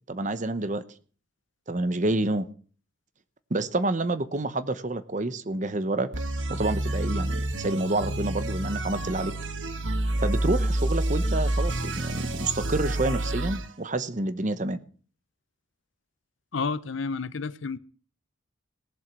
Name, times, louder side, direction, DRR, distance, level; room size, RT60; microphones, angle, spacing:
voice 1, 0.1-0.8 1.7-2.5 3.5-6.1 6.5-9.3 10.2-14.8, right 2 dB, 35° right, 0.9 m, -28 dB
sound 1, 6.1-13.7, right 1 dB, 65° right, 1.4 m, -28 dB
voice 2, 16.5-17.8, left 4 dB, 65° left, 0.6 m, -30 dB
19.0 x 7.4 x 6.1 m
head